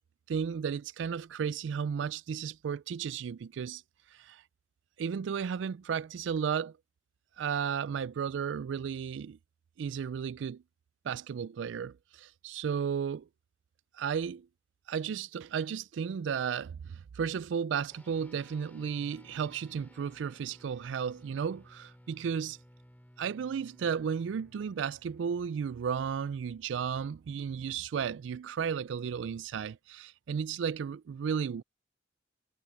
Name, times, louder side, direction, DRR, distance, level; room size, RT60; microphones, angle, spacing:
voice 1, 0.3-3.8 4.2-4.4 5.0-6.7 7.4-9.4 9.8-10.6 11.0-13.3 14.0-14.5 14.9-22.6 23.2-31.6, right 7 dB, 80° right, 0.3 m, -34 dB
sound 1, 17.9-27.5, equal, 10° left, 3.0 m, -59 dB
head